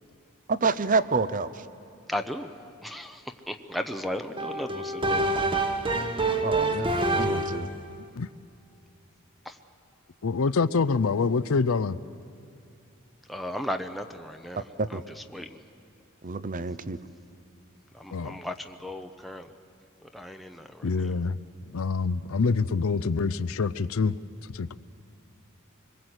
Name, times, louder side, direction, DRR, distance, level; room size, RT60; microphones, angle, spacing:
voice 1, 0.5-1.5 6.4-7.7 14.8-15.0 16.2-17.0, right 4 dB, 40° right, 15 dB, 0.7 m, -27 dB
voice 2, 2.1-2.5 2.8-5.5 6.1-6.3 9.4-9.6 13.3-14.6 14.9-15.6 17.9-19.5 20.0-21.1, left 1 dB, ahead, 5 dB, 0.7 m, -36 dB
sound 1, 4.4-7.7, right 2 dB, 25° right, 1.2 m, -26 dB
voice 3, 10.2-12.0 18.1-18.4 20.8-21.4 21.7-24.1 24.5-24.7, left 4 dB, 70° left, 15 dB, 0.5 m, -26 dB
25.0 x 21.5 x 8.0 m, 2.4 s
head